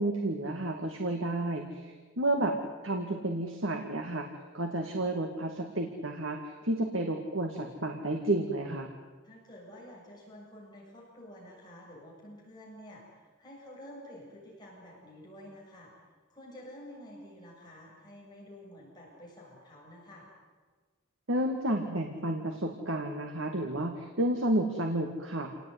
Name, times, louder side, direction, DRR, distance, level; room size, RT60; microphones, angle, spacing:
voice 1, 0.0-2.5 2.8-4.3 4.5-8.9 21.3-25.5, right 1 dB, 80° right, 4 dB, 2.3 m, -31 dB
voice 2, 9.2-15.9 16.3-20.3, left 1 dB, 20° left, -4 dB, 7.9 m, -50 dB
28.5 x 18.5 x 9.6 m, 1.4 s
head